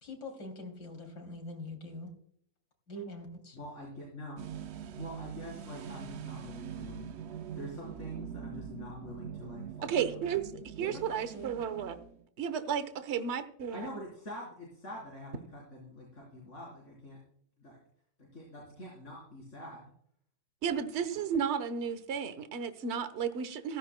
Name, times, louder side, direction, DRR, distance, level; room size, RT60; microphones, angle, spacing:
voice 1, 0.0-2.1 2.9-3.6 10.8-11.5, left 1 dB, 65° left, 3 dB, 3.6 m, -44 dB
voice 2, 3.5-4.4 4.9-7.1 7.3-9.9 10.8-11.0 13.7-17.2 17.6-17.8 18.2-19.8, left 1 dB, 45° left, -5 dB, 4.3 m, -45 dB
sound 1, 4.4-12.3, right 8 dB, 90° right, 0.5 m, -43 dB
voice 3, 9.8-12.0 12.4-13.9 20.6-23.8, right 7 dB, 45° right, 11 dB, 1.2 m, -33 dB
16.0 x 14.0 x 2.2 m, 0.65 s
omnidirectional pair, 1.9 m